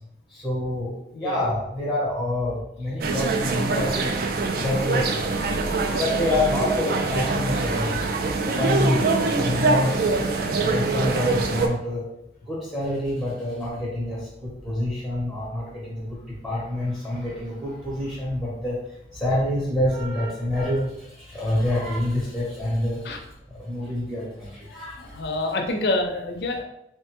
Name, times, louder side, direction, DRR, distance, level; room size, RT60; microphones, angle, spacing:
voice 1, 0.4-0.9 1.2-4.2 4.6-5.1 6.0-8.0 8.5-9.0 9.4-10.2 10.6-12.0 12.5-16.2 16.4-18.8 19.2-20.8 21.3-23.0 23.7-24.5 24.7-24.9, left 1 dB, ahead, -5 dB, 0.7 m, -26 dB
voice 2, 1.1-1.5 23.0-23.2 25.0-26.6, left 2 dB, 60° left, 3 dB, 0.5 m, -27 dB
sound 1, 3.0-11.7, right 3 dB, 55° right, 0.3 m, -24 dB
3.0 x 2.1 x 3.0 m, 0.79 s
head